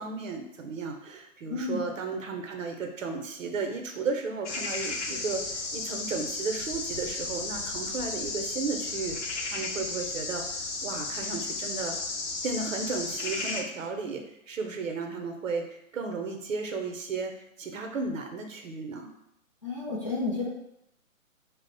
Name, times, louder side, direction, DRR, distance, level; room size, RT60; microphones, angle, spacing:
voice 1, 0.0-12.0 12.4-17.3 17.6-19.1, right 4 dB, 65° right, 4 dB, 0.7 m, -34 dB
voice 2, 1.5-1.8 19.6-20.5, left 3 dB, 25° left, -8 dB, 0.3 m, -31 dB
sound 1, 4.5-13.6, left 3 dB, 55° left, 0.7 m, -34 dB
2.3 x 2.0 x 3.8 m, 0.78 s
figure-of-eight pair, 135°, 41 cm